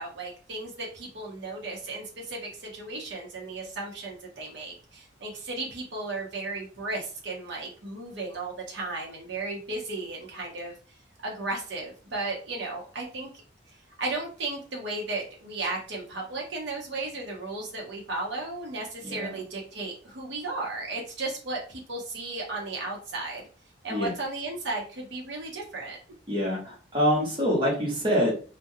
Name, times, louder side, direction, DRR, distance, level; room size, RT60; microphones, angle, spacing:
voice 1, 0.0-10.7 11.2-13.3 13.7-23.5 23.8-26.0, right 2 dB, 75° right, -1 dB, 0.7 m, -35 dB
voice 2, 26.3-28.3, equal, 30° right, -4 dB, 1.0 m, -25 dB
2.4 x 2.2 x 2.7 m, 0.38 s
head